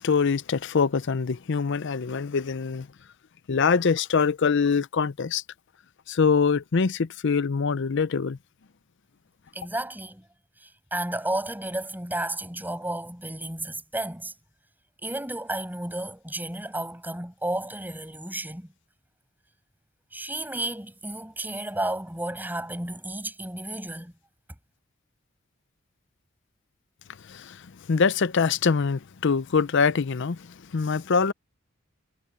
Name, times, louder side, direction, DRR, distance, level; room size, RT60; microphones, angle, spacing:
voice 1, 0.0-2.9 3.5-5.4 6.1-8.4 27.3-30.5 30.7-31.3, left 5 dB, 60° left, 0.5 m, -24 dB
voice 2, 9.5-10.3 10.6-14.3 15.0-18.7 20.1-24.1, right 1 dB, 10° right, 7.1 m, -32 dB
head